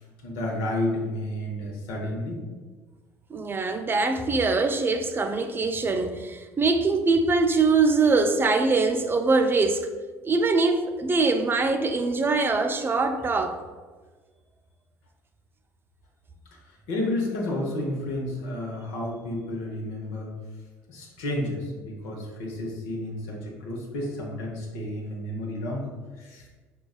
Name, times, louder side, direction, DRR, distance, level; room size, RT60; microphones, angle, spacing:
voice 1, 0.2-2.4 16.9-20.3 20.9-25.9 26.2-26.4, left 1 dB, 80° left, 0.8 m, -31 dB
voice 2, 3.3-9.9 10.2-13.6, right 3 dB, 25° right, 0.3 m, -23 dB
4.7 x 2.3 x 2.3 m
hypercardioid pair, 65°, 8 cm